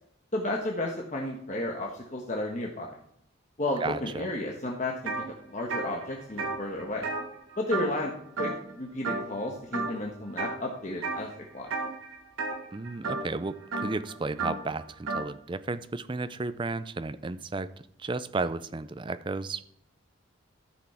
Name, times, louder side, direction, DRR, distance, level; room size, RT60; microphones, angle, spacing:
voice 1, 0.3-2.9 3.6-7.1 7.6-8.1 8.4-11.7, left 1 dB, 35° left, -1 dB, 1.2 m, -33 dB
voice 2, 3.8-4.3 12.7-17.7 18.0-19.6, right 3 dB, 25° right, 13 dB, 0.4 m, -33 dB
sound 1, 5.1-5.3 5.6-8.1 8.4-8.7 9.0-9.4 9.7-10.5 11.0-11.3 11.7-15.3, right 3 dB, 90° right, 1.8 m, -33 dB
13.5 x 6.2 x 4.4 m, 0.70 s
head